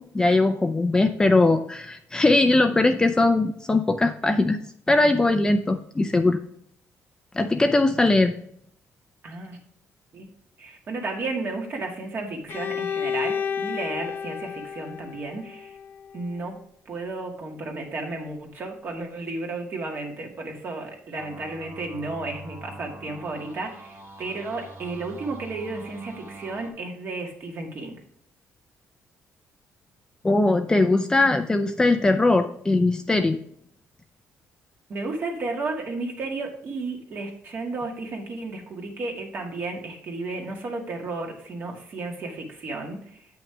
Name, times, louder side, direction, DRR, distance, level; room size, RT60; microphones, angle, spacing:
voice 1, 0.0-4.6 4.9-6.4 7.3-8.3 30.2-33.4, left 2 dB, 15° left, 6 dB, 0.5 m, -20 dB
voice 2, 9.2-9.6 10.1-10.3 10.6-15.8 16.1-16.6 16.9-28.0 34.9-43.3, right 3 dB, 45° right, 1 dB, 1.9 m, -33 dB
Bowed string instrument, 12.5-16.3, left 7 dB, 50° left, 0.7 m, -31 dB
sound 1, 21.2-26.7, right 2 dB, 65° right, 1.7 m, -44 dB
8.5 x 5.8 x 3.3 m, 0.68 s
cardioid pair, 145°, 5 cm